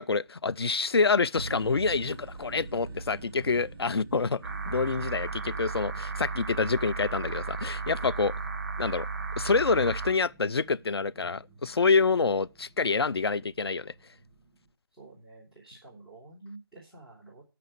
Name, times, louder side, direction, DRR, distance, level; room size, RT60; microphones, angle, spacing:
voice 1, 0.0-8.3 8.8-9.1 9.4-13.9, left 4 dB, 90° left, 0.5 m, -27 dB
sound 1, 1.3-14.7, right 3 dB, 25° right, 5.0 m, -47 dB
sound 2, 4.4-10.1, right 4 dB, 50° right, 2.5 m, -34 dB
voice 2, 14.9-17.4, right 2 dB, ahead, 3.1 m, -49 dB
9.0 x 6.8 x 7.9 m
figure-of-eight pair, 160°, 13 cm